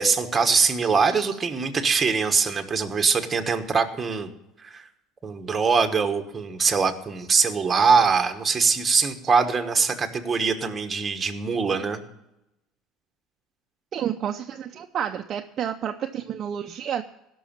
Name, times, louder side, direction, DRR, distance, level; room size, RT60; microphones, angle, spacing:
voice 1, 0.0-4.3 4.6-4.8 5.2-12.0, right 5 dB, 20° right, 6 dB, 1.2 m, -22 dB
voice 2, 13.9-17.0, right 9 dB, 35° right, 5 dB, 0.6 m, -30 dB
17.0 x 6.2 x 7.3 m, 0.89 s
cardioid pair, 145°, 0 cm